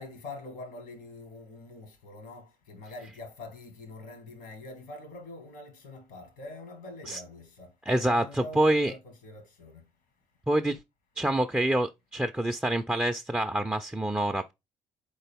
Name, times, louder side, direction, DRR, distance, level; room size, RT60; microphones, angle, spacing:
voice 1, 0.0-7.7 8.0-9.8, left 2 dB, 75° left, 1.6 m, -45 dB
voice 2, 7.9-8.9 10.5-10.8 11.2-14.5, right 1 dB, 10° right, 0.4 m, -26 dB
4.0 x 3.8 x 3.4 m
hypercardioid pair, 60°, 17 cm